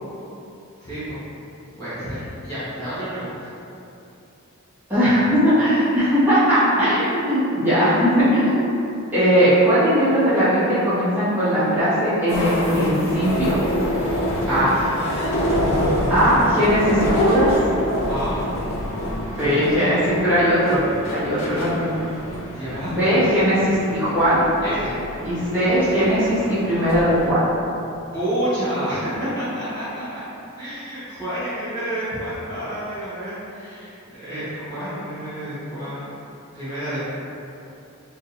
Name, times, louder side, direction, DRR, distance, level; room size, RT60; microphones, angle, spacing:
voice 1, 0.8-1.2 1.8-3.5 14.4-16.2 18.1-18.6 19.3-19.8 22.5-23.0 24.6-24.9 28.1-30.2 30.6-36.1 36.5-37.2, right 1 dB, 15° left, -16 dB, 1.2 m, -29 dB
voice 2, 4.9-8.7 9.1-13.6 14.5-14.7 16.1-17.5 19.4-20.8 21.1-21.9 22.9-24.4 25.2-27.4, equal, 10° right, -15 dB, 1.5 m, -19 dB
sound 1, 12.3-27.3, equal, 70° left, 0.6 m, -27 dB
4.1 x 3.7 x 2.6 m, 2.8 s
head